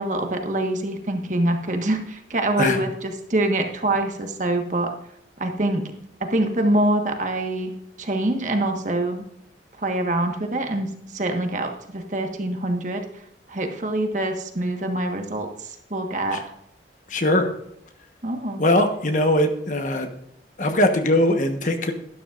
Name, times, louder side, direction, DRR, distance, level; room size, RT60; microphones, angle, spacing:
voice 1, 0.0-4.9 5.4-5.8 6.2-9.2 9.8-13.0 13.5-16.5 18.2-18.6, right 1 dB, 45° right, 4 dB, 1.4 m, -25 dB
voice 2, 17.1-17.5 18.6-20.1 20.6-21.9, left 1 dB, 45° left, 6 dB, 1.2 m, -20 dB
12.0 x 12.0 x 2.5 m, 0.77 s
head